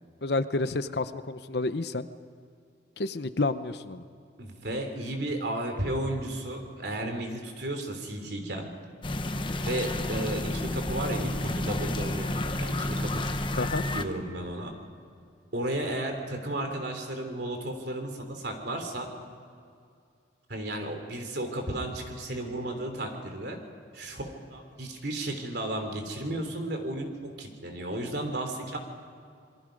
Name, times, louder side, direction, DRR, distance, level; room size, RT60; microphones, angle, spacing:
voice 1, 0.2-2.1 3.0-4.0 13.6-13.8, left 2 dB, 60° left, 12 dB, 0.8 m, -29 dB
voice 2, 4.4-8.7 9.6-13.3 13.9-14.7 15.5-19.1 20.5-23.6 23.9-28.8, right 1 dB, 60° right, 4 dB, 3.3 m, -33 dB
sound 1, 9.0-14.0, left 1 dB, 25° left, 0.9 m, -30 dB
27.5 x 22.0 x 5.3 m, 2.4 s
head